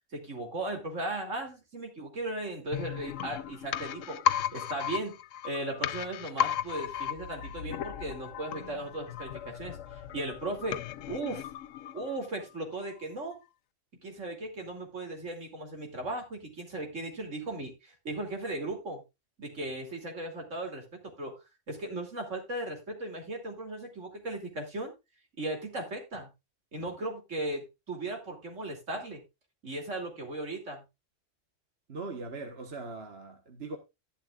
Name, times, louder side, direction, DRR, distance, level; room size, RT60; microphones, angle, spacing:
voice 1, 0.1-4.2 4.5-5.2 5.4-10.8 11.1-11.5 11.9-13.4 14.0-19.0 19.4-24.9 25.4-26.3 26.7-29.2 29.6-30.8, right 2 dB, 75° right, 3.2 m, -37 dB
sound 1, 2.7-12.4 12.7-12.8, left 10 dB, 90° left, 1.1 m, -35 dB
voice 2, 31.9-33.8, right 3 dB, 55° right, 1.5 m, -40 dB
11.5 x 11.5 x 2.4 m
omnidirectional pair, 1.3 m